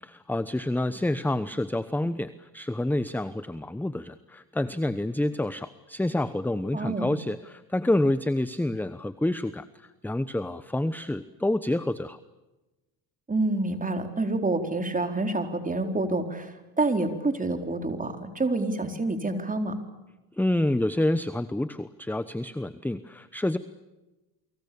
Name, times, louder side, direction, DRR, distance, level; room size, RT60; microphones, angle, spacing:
voice 1, 0.0-12.2 20.4-23.6, left 1 dB, 5° left, 13 dB, 1.0 m, -28 dB
voice 2, 6.7-7.1 13.3-19.8, right 2 dB, 20° right, 6 dB, 4.2 m, -28 dB
30.0 x 24.0 x 7.0 m, 1.1 s
cardioid pair, 95°, 45 cm